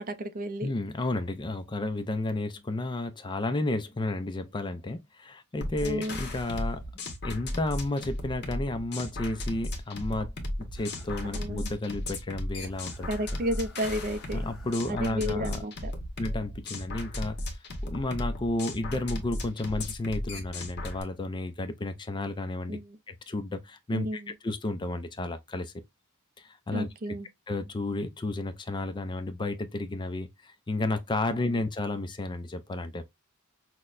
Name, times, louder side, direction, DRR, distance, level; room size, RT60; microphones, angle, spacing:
voice 1, 0.0-0.7 5.8-6.2 11.3-11.6 13.1-14.4 14.9-15.9 22.7-23.0 23.9-24.3 26.7-27.3, equal, 40° right, 0.5 m, -32 dB
voice 2, 0.6-6.8 7.2-10.3 10.6-13.1 14.3-15.6 16.2-17.4 17.8-22.8 23.1-25.7 26.4-26.9 27.5-33.0, left 2 dB, 20° left, 0.4 m, -32 dB
sound 1, 5.6-21.0, left 1 dB, 50° left, 1.1 m, -35 dB
sound 2, 10.7-11.9 12.1-12.2 12.6-15.3 16.1-16.2, left 1 dB, 5° right, 1.0 m, -52 dB
5.8 x 2.1 x 2.4 m
head